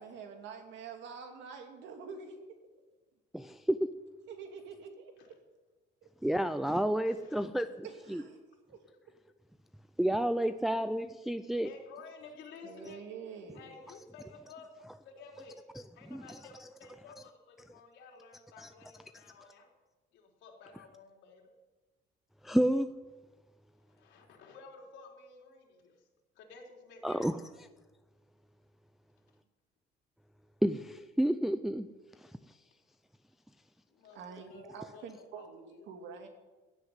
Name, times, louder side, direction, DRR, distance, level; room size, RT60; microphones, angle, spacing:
voice 1, 0.0-2.4 4.3-5.3 7.8-8.4 8.7-8.8 10.8-10.9 12.6-13.6 34.1-36.3, right 5 dB, 70° right, 4 dB, 2.7 m, -46 dB
voice 2, 3.3-3.9 6.2-8.2 10.0-11.7 16.1-16.4 18.6-18.7 22.4-22.9 27.0-27.4 30.6-31.9 32.2-32.3, right 1 dB, ahead, 9 dB, 0.4 m, -30 dB
voice 3, 7.1-7.4 11.6-13.0 13.5-15.6 15.9-19.7 20.1-21.4 23.9-26.1 26.4-27.4 29.3-29.4 33.9-35.9, left 4 dB, 75° left, 0 dB, 3.9 m, -53 dB
16.0 x 8.1 x 9.7 m, 1.2 s
cardioid pair, 155°, 19 cm